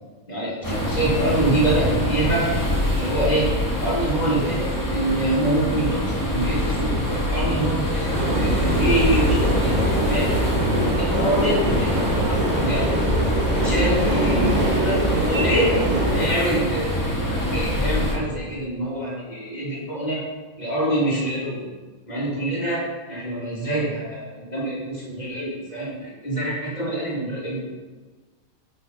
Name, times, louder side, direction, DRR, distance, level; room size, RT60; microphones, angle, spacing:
voice 1, 0.3-2.4 2.9-3.5 3.8-7.0 7.3-9.8 10.1-10.3 11.0-12.8 13.5-15.7 16.1-16.9 17.3-20.2 20.6-21.7 22.1-22.8 23.1-27.7, right 1 dB, 30° left, -6 dB, 2.7 m, -25 dB
sound 1, 0.6-18.2, left 1 dB, 15° left, 1.6 m, -24 dB
sound 2, 8.1-16.3, right 1 dB, 35° right, 1.2 m, -24 dB
9.2 x 7.5 x 4.0 m, 1.3 s
omnidirectional pair, 1.4 m